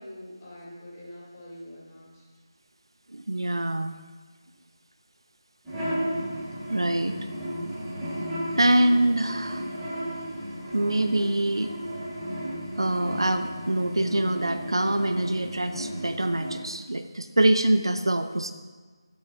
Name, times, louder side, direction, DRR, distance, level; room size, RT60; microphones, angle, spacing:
voice 1, 0.0-2.2, left 1 dB, 30° left, -6 dB, 3.5 m, -44 dB
voice 2, 3.1-3.9 6.7-7.8 8.6-9.7 10.7-11.8 12.8-18.5, right 1 dB, 70° right, 9 dB, 0.6 m, -25 dB
sound 1, 5.6-16.5, equal, 5° right, 3.0 m, -34 dB
12.0 x 8.5 x 3.5 m, 1.4 s
figure-of-eight pair, 160°, 3 cm